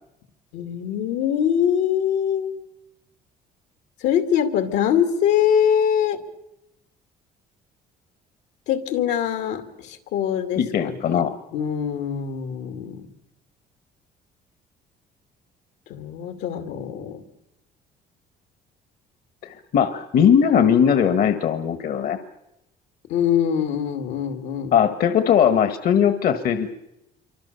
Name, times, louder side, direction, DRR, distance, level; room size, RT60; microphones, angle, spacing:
voice 1, 0.5-2.5 4.0-6.2 8.7-11.2 11.5-13.1 15.9-17.2 23.1-24.8, left 9 dB, 90° left, 7 dB, 2.5 m, -23 dB
voice 2, 10.6-11.3 19.4-22.2 24.7-26.7, left 8 dB, 60° left, 10 dB, 1.4 m, -19 dB
27.0 x 24.0 x 6.8 m, 0.89 s
cardioid pair, 110°, 17 cm